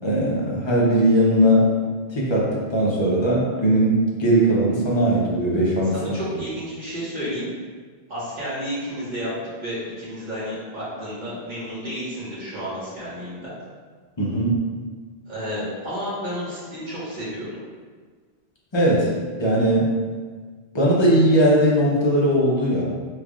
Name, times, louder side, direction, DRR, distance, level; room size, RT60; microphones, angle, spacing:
voice 1, 0.0-1.7 2.1-3.9 4.2-5.9 14.2-14.6 18.7-19.1 19.4-19.9 20.7-22.8, right 1 dB, 30° left, -5 dB, 0.7 m, -19 dB
voice 2, 5.9-7.5 8.1-9.3 9.6-13.5 15.3-17.5, equal, 45° right, -10 dB, 1.5 m, -31 dB
3.5 x 3.4 x 2.4 m, 1.5 s
omnidirectional pair, 1.1 m